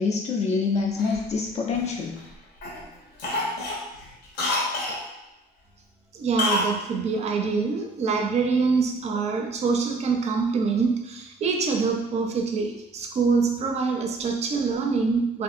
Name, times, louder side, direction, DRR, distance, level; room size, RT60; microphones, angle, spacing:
voice 1, 0.0-2.2, left 4 dB, 40° left, 1 dB, 0.4 m, -26 dB
Cough, 1.0-2.2 2.6-2.8 3.2-5.0 6.4-6.7 7.0-7.1, left 2 dB, 80° left, 0.8 m, -28 dB
voice 2, 6.1-15.4, right 4 dB, 40° right, 3 dB, 0.4 m, -25 dB
2.7 x 2.5 x 2.4 m, 0.95 s
cardioid pair, 110°, 17 cm